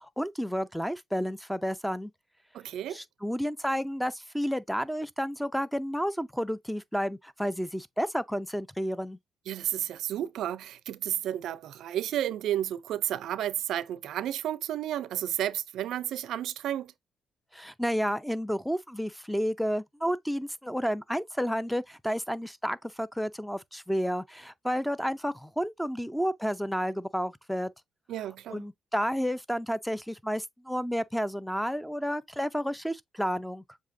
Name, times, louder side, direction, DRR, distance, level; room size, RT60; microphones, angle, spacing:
voice 1, 0.0-2.1 2.9-9.2 17.5-27.7 28.5-33.6, equal, ahead, 0.5 m, -31 dB
voice 2, 2.5-3.0 9.5-16.9 28.1-28.6, right 11 dB, 80° right, 0.4 m, -32 dB
7.3 x 2.7 x 2.6 m
cardioid pair, 90°, 0 cm